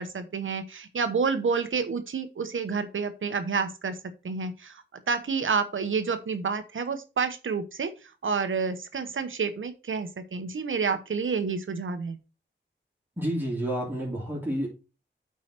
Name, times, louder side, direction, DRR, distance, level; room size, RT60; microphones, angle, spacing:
voice 1, 0.0-4.0 4.2-12.2, right 5 dB, 85° right, 9 dB, 0.9 m, -29 dB
voice 2, 13.2-14.7, equal, 10° right, -5 dB, 3.3 m, -29 dB
8.6 x 4.8 x 4.3 m, 0.31 s
wide cardioid pair, 95°, 20 cm